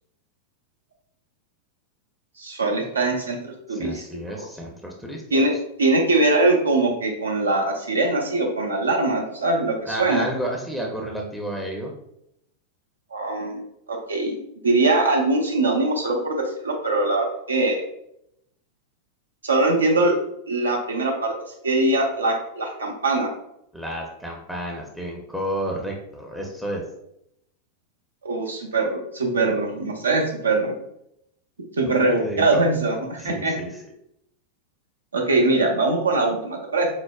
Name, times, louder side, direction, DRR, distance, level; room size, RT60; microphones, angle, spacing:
voice 1, 2.4-4.0 5.3-5.5 5.8-10.2 13.1-13.6 13.9-14.4 14.6-17.8 19.4-21.3 21.6-23.3 28.2-30.7 31.8-33.5 35.1-36.9, right 2 dB, 75° right, 1 dB, 0.6 m, -22 dB
voice 2, 3.7-5.2 9.8-11.9 23.7-26.8 31.9-32.6 33.2-33.7, right 1 dB, ahead, -1 dB, 0.5 m, -31 dB
4.7 x 2.0 x 2.3 m, 0.77 s
figure-of-eight pair, 90°, 0 cm